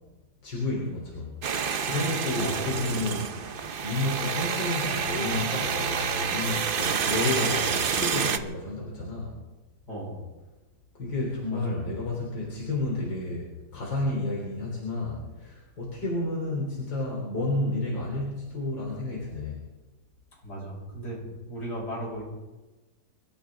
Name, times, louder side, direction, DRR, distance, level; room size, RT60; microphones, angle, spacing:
voice 1, 0.4-1.3 1.8-9.3 11.0-19.6, left 2 dB, 80° left, -3 dB, 4.3 m, -31 dB
sound 1, 1.4-8.4, right 6 dB, 65° right, 0.5 m, -28 dB
voice 2, 2.4-2.8 9.9-10.2 11.5-11.8 20.4-21.2 21.5-22.2, equal, 60° left, -3 dB, 6.5 m, -36 dB
26.0 x 14.5 x 3.7 m, 1.2 s
omnidirectional pair, 2.0 m